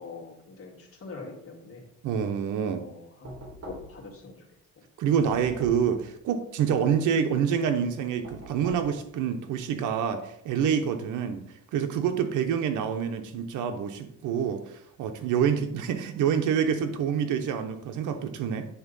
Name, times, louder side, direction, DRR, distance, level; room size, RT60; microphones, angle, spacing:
voice 1, 0.0-1.9 2.8-3.4 3.6-4.4, left 3 dB, 50° left, -1 dB, 2.2 m, -43 dB
voice 2, 2.0-2.8 5.0-11.4 11.7-18.7, right 7 dB, 90° right, 7 dB, 0.9 m, -27 dB
Knock, 3.2-4.1 5.2-6.0 8.2-9.0, right 1 dB, 55° right, 3.6 m, -44 dB
9.6 x 3.6 x 5.4 m, 0.74 s
cardioid pair, 90°, 30 cm